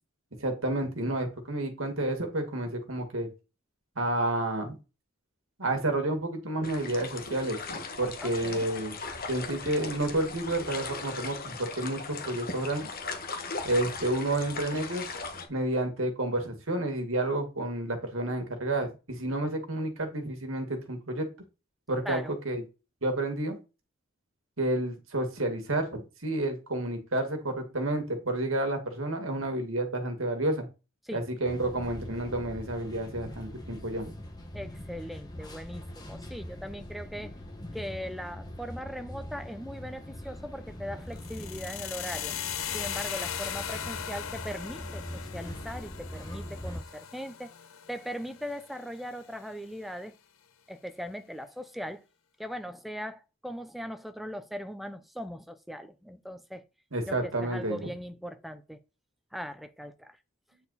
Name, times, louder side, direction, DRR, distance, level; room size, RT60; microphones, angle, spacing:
voice 1, 0.4-3.3 4.0-4.8 5.6-9.0 9.3-12.9 13.6-15.0 15.5-21.3 21.9-22.6 23.0-23.6 24.6-30.7 31.1-34.1 56.9-57.8, right 1 dB, 80° right, 2.1 m, -30 dB
sound 1, 6.6-15.5, left 4 dB, 45° left, 1.3 m, -38 dB
voice 2, 8.2-8.7 22.0-22.3 31.0-31.2 34.5-37.3 37.7-42.3 42.7-47.5 47.9-50.1 50.7-52.0 52.4-56.6 57.1-58.8 59.3-60.2, equal, ahead, 0.6 m, -39 dB
sound 2, 31.4-46.8, equal, 20° left, 1.4 m, -42 dB
sound 3, 41.1-49.2, left 9 dB, 90° left, 0.7 m, -38 dB
9.0 x 4.4 x 4.1 m
head